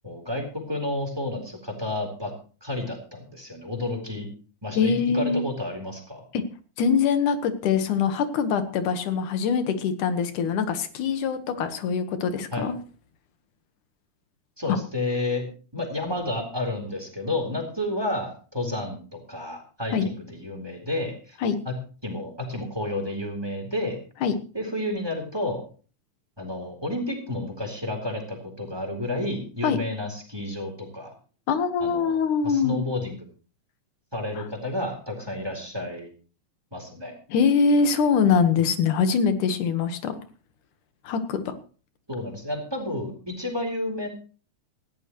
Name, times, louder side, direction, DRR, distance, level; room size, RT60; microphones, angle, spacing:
voice 1, 0.0-2.3 2.6-4.3 4.6-6.2 12.5-12.7 14.6-15.4 15.7-21.4 21.7-21.8 22.0-24.0 24.5-25.6 26.4-31.1 31.8-32.2 32.4-33.2 34.1-36.1 36.7-37.1 38.6-38.7 42.1-44.1, left 1 dB, 10° right, 3 dB, 3.8 m, -31 dB
voice 2, 4.8-5.4 6.3-6.4 6.8-12.7 14.7-14.8 19.9-20.1 21.4-21.6 24.2-24.3 29.6-29.8 31.5-32.8 34.4-34.5 37.3-40.2 41.0-41.5, left 6 dB, 90° left, 9 dB, 2.9 m, -23 dB
19.0 x 15.0 x 3.1 m, 0.38 s
omnidirectional pair, 3.4 m